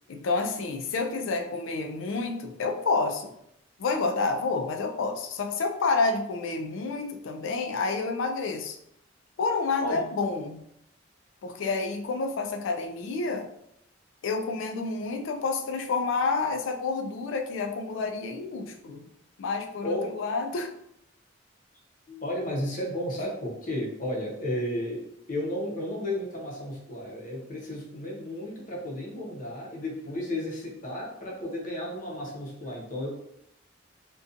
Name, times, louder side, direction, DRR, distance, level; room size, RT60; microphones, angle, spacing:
voice 1, 0.1-3.4 3.8-8.8 9.4-10.7 11.4-13.5 14.2-19.1 19.4-20.7, left 4 dB, 75° left, 6 dB, 0.4 m, -29 dB
voice 2, 19.8-20.1 22.1-33.1, left 1 dB, 40° left, -3 dB, 0.7 m, -33 dB
2.5 x 2.2 x 2.4 m, 0.76 s
head